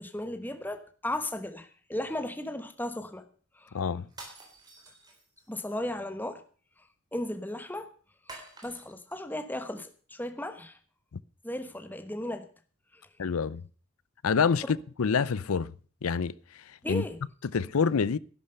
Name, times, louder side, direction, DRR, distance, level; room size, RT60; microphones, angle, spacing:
voice 1, 0.0-3.3 3.5-3.8 5.5-6.4 7.1-7.9 8.3-10.8 11.4-12.5 12.9-13.0 14.6-14.7 16.8-17.2, left 1 dB, 10° left, 1.0 m, -36 dB
voice 2, 3.7-4.1 13.2-13.6 14.2-15.7 16.0-17.0 17.5-18.2, left 5 dB, 90° left, 0.5 m, -27 dB
sound 1, 4.1-5.6 8.3-9.2, right 2 dB, 20° right, 3.7 m, -48 dB
11.5 x 11.5 x 6.6 m
head